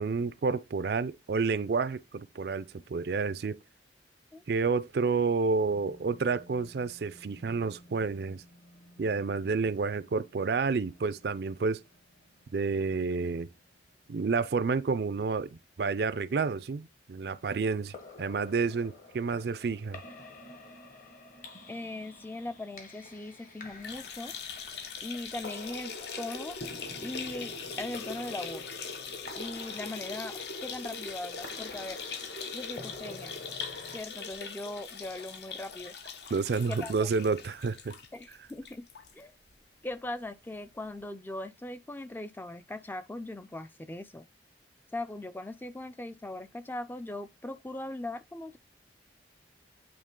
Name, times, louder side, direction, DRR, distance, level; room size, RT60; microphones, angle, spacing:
voice 1, 0.0-3.6 4.5-8.4 9.0-11.8 12.5-13.5 14.1-15.5 15.8-20.0 36.3-37.9, right 4 dB, 60° right, 0.4 m, -30 dB
sound 1, 5.7-16.5 16.9-17.0, equal, 85° left, 2.1 m, -59 dB
sound 2, 17.8-34.0, left 2 dB, 50° left, 1.4 m, -48 dB
voice 2, 21.7-24.4 25.0-26.6 27.0-28.8 29.3-32.0 32.5-33.3 33.9-36.0 36.7-37.1 38.1-38.9 39.1-39.3 39.8-44.3 44.9-48.6, left 2 dB, 10° left, 0.4 m, -40 dB
sound 3, 23.7-39.1 39.5-39.6 39.9-40.0 41.0-41.1, left 5 dB, 70° left, 0.9 m, -41 dB
8.7 x 3.2 x 3.7 m
head